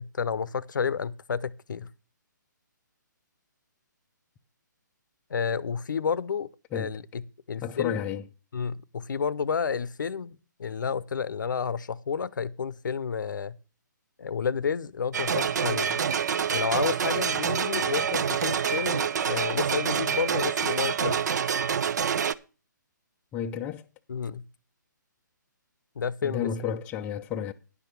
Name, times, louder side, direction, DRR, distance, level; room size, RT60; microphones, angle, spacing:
voice 1, 0.0-1.9 5.3-7.2 7.5-8.0 8.5-10.3 10.6-13.6 14.2-16.0 16.5-21.2 24.1-24.5 26.0-26.7, left 6 dB, 75° left, 0.7 m, -30 dB
voice 2, 7.6-8.3 23.3-23.8 26.2-27.5, left 8 dB, 15° left, 0.4 m, -31 dB
sound 1, 15.1-22.3, right 7 dB, 60° right, 0.5 m, -27 dB
10.0 x 6.0 x 6.8 m
hypercardioid pair, 150°, 10 cm